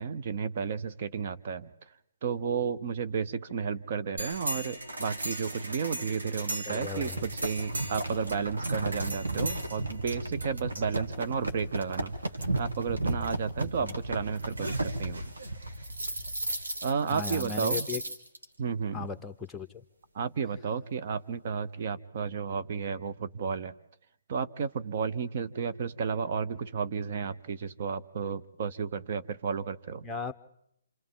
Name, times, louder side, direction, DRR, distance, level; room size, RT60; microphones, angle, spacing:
voice 1, 0.0-1.7 2.2-12.1 12.6-15.3 16.8-17.9 18.6-19.1 20.1-23.7 24.3-30.0, right 6 dB, 45° right, 10 dB, 0.8 m, -32 dB
sound 1, 4.2-18.4, right 2 dB, 85° right, 2.3 m, -34 dB
voice 2, 6.7-7.2 13.6-13.9 17.1-18.0 18.9-19.8 30.0-30.3, left 4 dB, 10° left, 5 dB, 0.8 m, -37 dB
27.5 x 27.5 x 3.8 m, 0.77 s
figure-of-eight pair, 140°, 0 cm